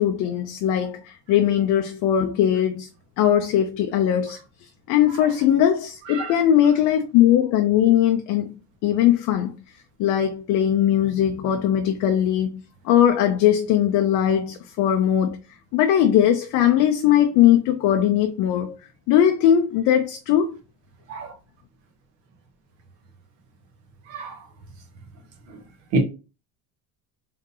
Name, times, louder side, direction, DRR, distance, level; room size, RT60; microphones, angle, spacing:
voice 1, 0.0-2.9 3.2-4.4 4.9-9.5 10.0-15.4 15.7-18.8 19.1-20.5, left 10 dB, 45° left, 0.5 m, -20 dB
voice 2, 6.1-6.3 21.1-21.3 24.1-24.4 25.9-26.0, right 2 dB, 70° right, 1.7 m, -27 dB
3.8 x 3.7 x 2.7 m
cardioid pair, 160°, 46 cm